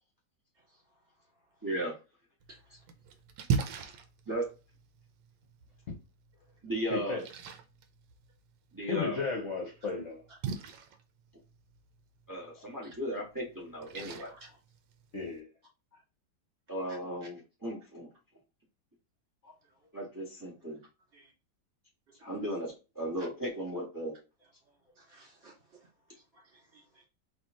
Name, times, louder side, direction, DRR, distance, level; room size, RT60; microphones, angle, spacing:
voice 1, 1.6-1.9 4.3-4.4 6.6-7.2 8.7-9.2 12.3-14.3 16.7-18.1 19.9-20.8 22.2-24.1, equal, 10° right, 1.3 m, -36 dB
Splash splatter, 2.4-15.4, right 6 dB, 80° right, 1.4 m, -41 dB
voice 2, 6.9-7.2 8.9-10.2 15.1-15.5, left 4 dB, 45° left, 1.2 m, -34 dB
voice 3, 25.0-25.5 26.1-27.0, equal, 40° right, 2.8 m, -58 dB
4.3 x 3.2 x 3.7 m
omnidirectional pair, 1.9 m